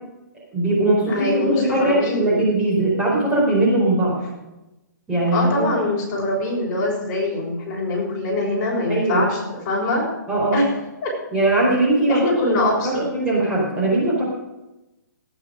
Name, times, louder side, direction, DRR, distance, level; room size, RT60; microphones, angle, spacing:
voice 1, 0.5-4.2 5.1-5.7 8.9-9.3 10.3-10.6 11.3-14.2, right 2 dB, 10° right, -6 dB, 4.8 m, -20 dB
voice 2, 1.1-2.4 5.3-9.4 9.6-10.0 10.5-10.7 11.0-11.1 12.1-13.0, left 2 dB, 35° left, -3 dB, 6.5 m, -23 dB
17.5 x 9.3 x 5.2 m, 0.99 s
hypercardioid pair, 140°, 10 cm